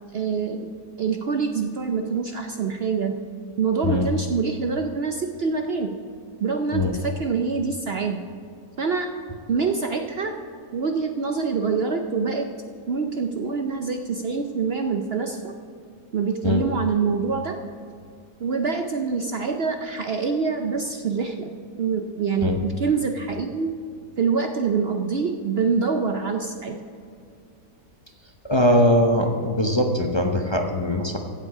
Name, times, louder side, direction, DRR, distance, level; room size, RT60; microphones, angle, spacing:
voice 1, 0.1-0.7 1.0-3.2 3.6-6.0 6.4-8.2 8.8-9.1 9.5-10.3 10.7-12.5 12.9-15.5 16.1-17.6 18.4-21.5 21.8-23.7 24.2-26.8, right 5 dB, 55° right, 5 dB, 0.7 m, -25 dB
voice 2, 28.4-31.2, left 1 dB, 25° left, 2 dB, 0.7 m, -21 dB
15.5 x 8.1 x 4.8 m, 2.3 s
omnidirectional pair, 1.6 m